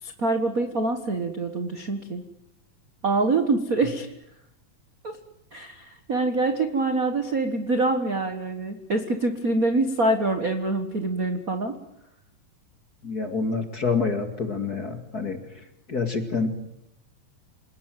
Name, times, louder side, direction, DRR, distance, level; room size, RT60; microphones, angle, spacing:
voice 1, 0.0-2.2 3.0-4.1 5.0-5.2 5.5-11.7, right 2 dB, 55° right, 7 dB, 0.9 m, -25 dB
voice 2, 13.0-15.4 15.9-16.5, left 4 dB, 35° left, 6 dB, 2.0 m, -27 dB
28.0 x 19.0 x 9.2 m, 0.84 s
omnidirectional pair, 4.1 m